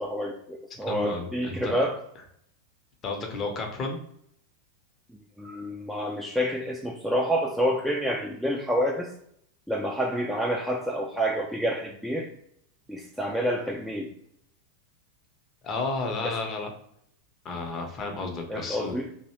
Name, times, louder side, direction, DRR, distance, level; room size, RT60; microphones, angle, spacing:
voice 1, 0.0-2.0 5.4-9.1 9.7-12.3 12.9-14.1 16.2-16.3 18.5-19.1, equal, ahead, -1 dB, 0.4 m, -28 dB
voice 2, 0.8-1.8 3.0-4.0 15.6-16.7 17.4-18.9, left 3 dB, 30° left, 3 dB, 0.7 m, -32 dB
2.6 x 2.1 x 2.8 m, 0.70 s
figure-of-eight pair, 90°, 0 cm